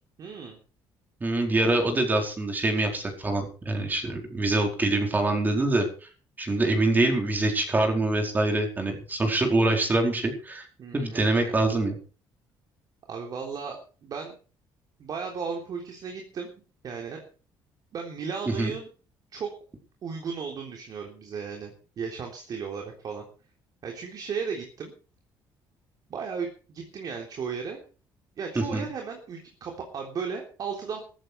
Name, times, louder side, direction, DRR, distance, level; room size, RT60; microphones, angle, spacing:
voice 1, 0.2-0.6 10.8-11.6 13.1-14.3 15.0-16.5 16.8-17.2 17.9-18.9 19.3-19.5 20.0-23.2 23.8-24.9 26.1-27.8 28.4-31.0, right 6 dB, 45° right, 2 dB, 3.6 m, -35 dB
voice 2, 1.2-5.9 6.4-10.7 10.9-12.0 18.5-18.7 28.5-28.9, right 2 dB, 20° right, 3 dB, 4.6 m, -25 dB
15.0 x 14.5 x 4.7 m, 0.38 s
cardioid pair, 140°, 9 cm